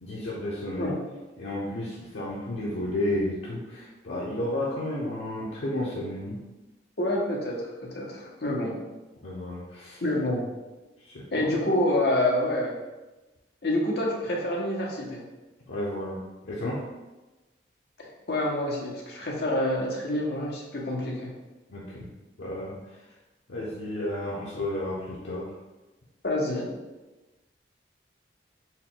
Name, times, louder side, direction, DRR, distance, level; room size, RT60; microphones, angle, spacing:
voice 1, 0.0-0.9 1.4-6.4 9.2-10.0 11.1-11.5 15.7-16.2 16.4-16.8 21.7-22.1 22.4-22.8 23.5-25.5, left 1 dB, 90° left, -6 dB, 0.7 m, -32 dB
voice 2, 7.0-8.8 10.0-10.5 11.3-12.8 13.6-15.2 18.3-21.3 26.2-26.7, left 1 dB, 60° left, -2 dB, 0.8 m, -27 dB
4.4 x 2.2 x 3.7 m, 1.1 s
head